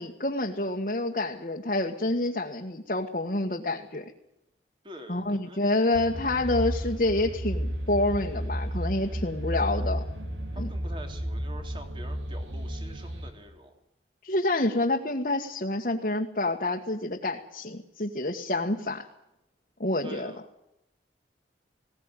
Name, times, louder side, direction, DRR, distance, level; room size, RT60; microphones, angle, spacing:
voice 1, 0.0-4.0 5.1-10.0 10.6-10.7 14.2-19.1 19.8-20.3, left 2 dB, 45° left, 0 dB, 1.6 m, -28 dB
voice 2, 4.8-5.6 10.5-13.8 20.0-20.4, right 1 dB, 30° right, 5 dB, 3.2 m, -45 dB
sound 1, 5.9-13.3, equal, 90° right, 4.0 m, -33 dB
20.0 x 18.0 x 9.9 m, 0.85 s
head